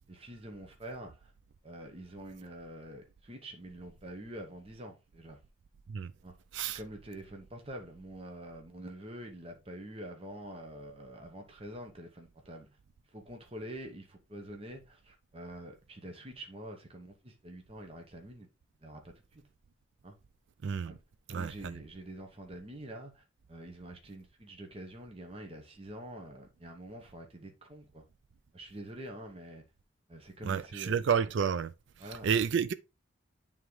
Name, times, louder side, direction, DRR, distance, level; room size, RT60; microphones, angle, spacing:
voice 1, 0.1-1.3 1.6-5.4 6.2-6.3 6.7-12.8 13.1-18.5 18.8-19.5 20.0-20.1 20.8-21.0 21.3-28.0 28.5-29.6 30.1-31.1 32.0-32.3, right 1 dB, 30° right, 0.9 m, -46 dB
voice 2, 20.6-21.0 21.3-21.8 30.4-31.7 32.2-32.7, right 7 dB, 65° right, 0.4 m, -30 dB
9.2 x 3.6 x 3.1 m
head